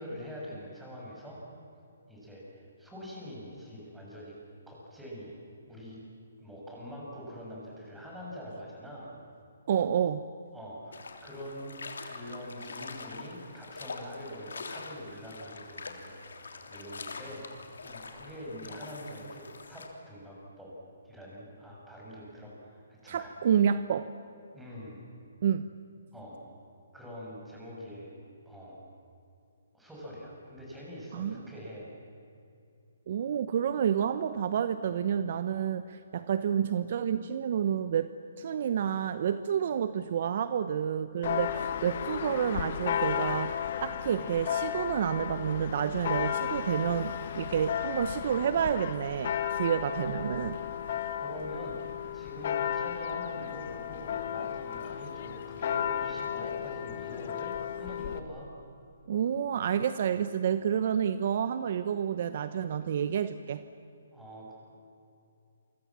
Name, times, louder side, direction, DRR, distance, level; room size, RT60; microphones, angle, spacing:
voice 1, 0.0-1.4 2.1-4.4 4.7-5.4 5.7-6.0 6.4-9.1 10.5-11.8 12.0-16.4 16.7-20.7 21.0-23.6 24.5-25.0 26.1-26.4 26.9-28.2 28.5-28.8 29.7-31.9 50.0-50.2 51.2-51.8 52.1-58.5 64.1-64.5, equal, 5° right, -5 dB, 7.4 m, -44 dB
voice 2, 9.7-10.2 23.1-24.1 25.4-25.7 31.1-31.4 33.1-38.1 38.4-50.6 59.1-63.6, right 8 dB, 50° right, 12 dB, 0.9 m, -29 dB
sound 1, 10.9-19.9, left 4 dB, 85° left, 3.3 m, -44 dB
Church bell, 41.2-58.2, left 9 dB, 45° left, 1.4 m, -34 dB
29.0 x 24.0 x 7.6 m, 2.6 s
hypercardioid pair, 160°, 0 cm